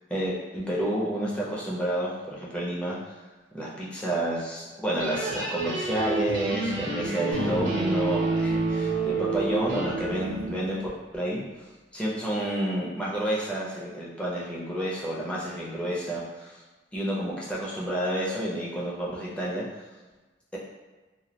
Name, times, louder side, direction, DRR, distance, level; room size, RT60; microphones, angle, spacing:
voice 1, 0.1-3.0 3.5-10.8 11.1-11.4 11.9-16.5 16.9-19.6, right 1 dB, 5° left, -6 dB, 0.5 m, -30 dB
sound 1, 5.0-10.6, right 3 dB, 70° right, 0.6 m, -29 dB
sound 2, 7.3-10.9, left 1 dB, 60° left, 0.5 m, -38 dB
2.2 x 2.1 x 2.8 m, 1.2 s
head